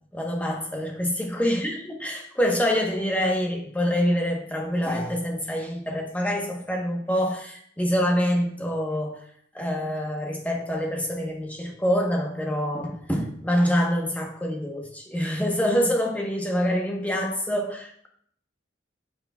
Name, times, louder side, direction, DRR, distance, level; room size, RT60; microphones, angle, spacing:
voice 1, 0.1-9.2 9.5-18.1, equal, 10° left, 0 dB, 1.1 m, -26 dB
9.2 x 6.7 x 2.4 m, 0.64 s
head